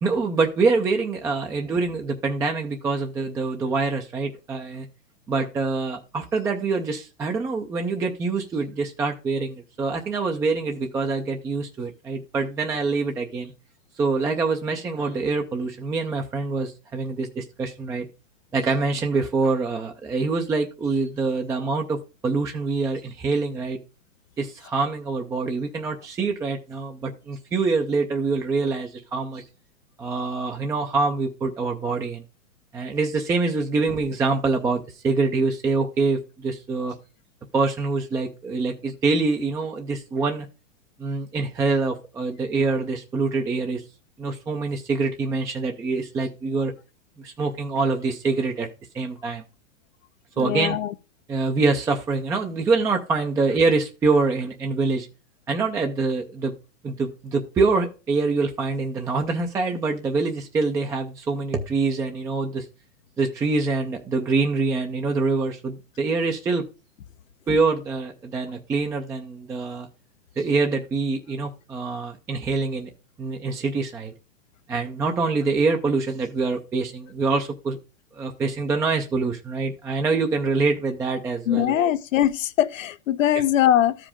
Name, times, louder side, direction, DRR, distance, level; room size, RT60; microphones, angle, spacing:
voice 1, 0.0-4.9 5.3-13.5 14.0-18.1 18.5-23.8 24.4-29.4 30.0-32.2 32.7-36.9 37.5-40.5 41.0-43.8 44.2-46.7 47.2-48.7 48.9-49.4 50.4-50.8 51.3-55.1 55.5-56.5 56.8-62.7 63.2-66.6 67.5-69.9 70.4-72.9 73.2-74.1 74.7-77.8 78.1-81.9, right 4 dB, 10° right, 0.4 m, -25 dB
voice 2, 50.4-50.9 81.5-84.0, left 11 dB, 85° left, 0.9 m, -21 dB
13.0 x 5.0 x 3.5 m
hypercardioid pair, 140°, 38 cm